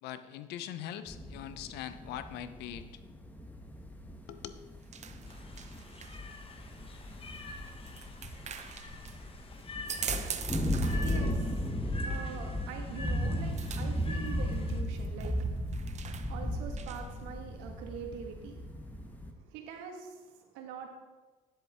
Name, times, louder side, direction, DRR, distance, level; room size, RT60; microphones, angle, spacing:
voice 1, 0.0-2.9 4.3-4.5, left 10 dB, 70° left, 12 dB, 0.7 m, -41 dB
sound 1, 1.1-19.3, equal, 10° left, 1.3 m, -36 dB
sound 2, 4.3-17.2, right 7 dB, 40° right, 0.8 m, -44 dB
sound 3, 5.3-14.8, left 2 dB, 30° left, 1.1 m, -47 dB
voice 2, 10.0-20.9, right 6 dB, 75° right, 3 dB, 1.6 m, -45 dB
10.5 x 8.0 x 3.6 m, 1.3 s
supercardioid pair, 75°, 18 cm